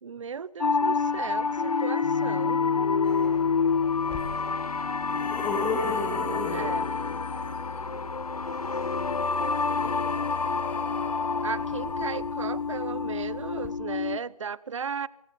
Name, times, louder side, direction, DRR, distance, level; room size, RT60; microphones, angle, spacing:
voice 1, 0.0-2.6 6.5-6.8 11.4-15.1, right 6 dB, 55° right, 0.8 m, -35 dB
sound 1, 0.6-14.2, left 5 dB, 80° left, 1.2 m, -28 dB
voice 2, 3.0-3.5 4.0-4.6 5.0-8.1 8.4-10.6 11.7-11.8, right 2 dB, 15° right, 6.7 m, -47 dB
sound 2, 4.1-4.2 4.8-7.5 8.7-12.6 13.6-13.7, left 4 dB, 5° left, 2.1 m, -35 dB
23.5 x 22.5 x 5.2 m
figure-of-eight pair, 160°, 19 cm